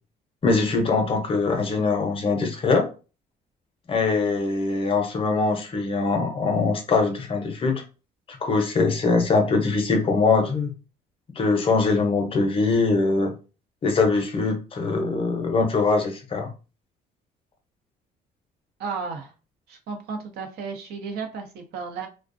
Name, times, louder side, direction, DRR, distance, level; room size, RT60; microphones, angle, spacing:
voice 1, 0.4-2.9 3.9-7.8 8.3-10.7 11.4-13.3 13.8-16.5, left 4 dB, 35° left, 0.6 m, -22 dB
voice 2, 18.8-19.3 19.7-22.1, right 5 dB, 70° right, 0.7 m, -33 dB
2.4 x 2.1 x 2.5 m
cardioid pair, 110°, 17 cm